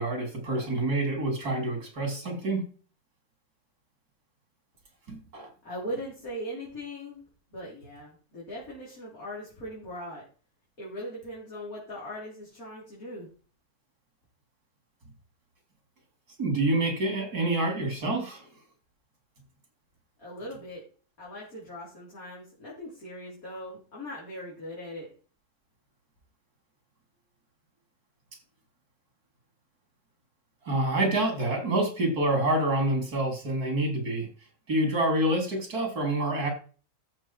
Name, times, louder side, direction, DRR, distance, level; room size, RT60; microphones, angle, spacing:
voice 1, 0.0-2.6 5.1-5.5 16.4-18.5 30.6-34.3 34.7-36.5, right 1 dB, 90° right, 3 dB, 3.7 m, -27 dB
voice 2, 5.6-7.2 7.5-10.2 10.8-13.3 20.2-20.8 21.2-25.1, equal, 65° left, -6 dB, 4.3 m, -39 dB
13.5 x 6.6 x 4.5 m, 0.38 s
omnidirectional pair, 1.6 m